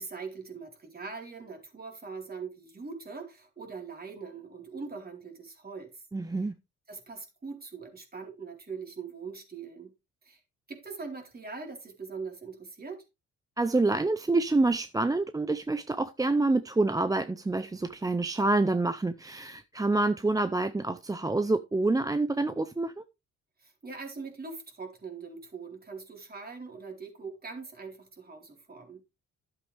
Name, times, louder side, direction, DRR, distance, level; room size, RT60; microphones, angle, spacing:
voice 1, 0.0-6.0 6.9-9.9 10.2-10.4 10.7-13.0 23.6-29.0, right 4 dB, 30° right, 4.0 m, -42 dB
voice 2, 6.1-6.5 13.6-23.0, right 2 dB, 10° right, 0.6 m, -27 dB
12.0 x 8.1 x 3.3 m
cardioid pair, 90°, 30 cm